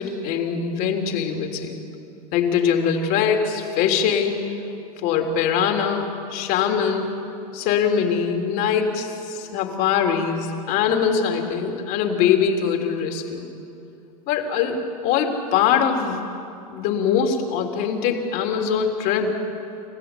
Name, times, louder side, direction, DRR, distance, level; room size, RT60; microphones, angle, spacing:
voice 1, 0.0-1.8 2.3-4.5 5.0-7.2 7.5-13.5 14.3-16.2 16.7-19.4, left 7 dB, 50° left, 3 dB, 3.3 m, -22 dB
28.5 x 15.5 x 9.8 m, 2.6 s
supercardioid pair, 125°, 20 cm